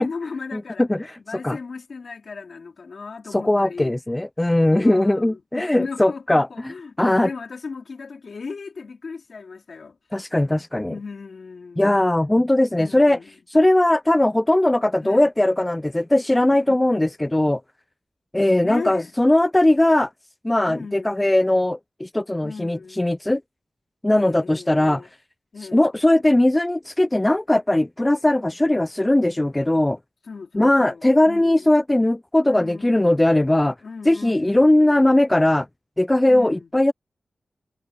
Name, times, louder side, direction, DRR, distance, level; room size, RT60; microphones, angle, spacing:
voice 1, 0.0-0.9 1.3-3.9 4.7-10.0 10.9-11.9 12.8-13.3 15.0-15.3 16.7-16.8 18.6-19.1 20.7-21.2 22.4-23.1 24.1-25.1 25.5-25.9 30.2-31.7 32.5-33.0 33.8-35.2 36.3-36.7, left 4 dB, 70° left, 3.9 m, -36 dB
voice 2, 3.3-6.7 7.0-7.3 10.1-10.9 11.8-13.2 13.5-17.6 18.3-20.1 20.4-23.4 24.0-25.0 25.7-30.0 30.5-33.7 34.1-35.7 36.0-36.9, left 1 dB, 20° left, 0.4 m, -19 dB
cardioid pair, 60°, 0 cm